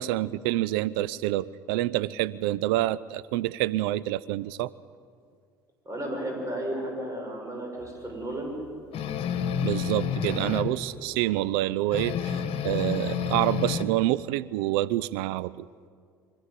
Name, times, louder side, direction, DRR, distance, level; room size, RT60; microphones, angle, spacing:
voice 1, 0.0-4.7 9.6-15.7, right 15 dB, 70° right, 19 dB, 0.6 m, -27 dB
voice 2, 5.8-8.6 11.1-11.2, right 1 dB, 25° right, 1 dB, 6.6 m, -33 dB
sound 1, 8.9-10.8 11.9-13.8, left 8 dB, 50° left, 1.7 m, -29 dB
25.0 x 14.0 x 8.3 m, 2.1 s
hypercardioid pair, 65°, 12 cm